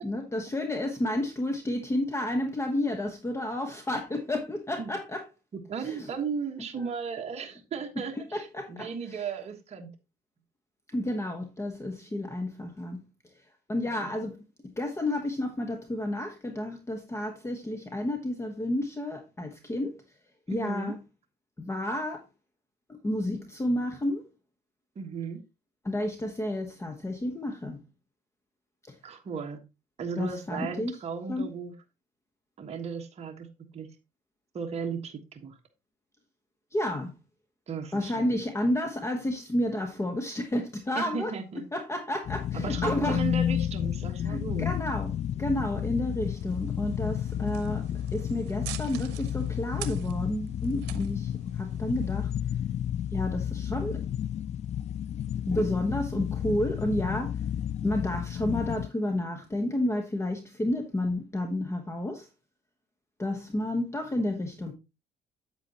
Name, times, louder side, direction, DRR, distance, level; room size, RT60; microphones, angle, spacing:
voice 1, 0.0-5.3 5.8-6.1 8.3-9.2 10.9-13.0 13.7-14.4 14.6-20.0 20.5-21.0 21.6-22.2 22.9-24.2 25.8-27.8 28.9-29.0 30.2-31.0 31.3-31.5 36.7-37.1 37.9-41.4 41.7-43.2 44.2-52.3 53.1-54.0 55.5-57.4 57.8-62.3 63.2-64.7, left 1 dB, 15° left, 1.1 m, -31 dB
voice 2, 5.5-9.9 14.0-14.1 20.5-20.9 24.9-25.4 29.0-29.6 30.0-31.7 32.6-33.5 33.7-33.9 34.5-35.6 37.7-38.4 40.9-41.6 42.5-44.7, right 6 dB, 40° right, 1.4 m, -36 dB
sound 1, 42.3-58.9, left 10 dB, 40° left, 0.4 m, -31 dB
sound 2, 46.2-52.3, right 14 dB, 90° right, 0.8 m, -46 dB
8.2 x 8.1 x 2.9 m
cardioid pair, 110°, 17 cm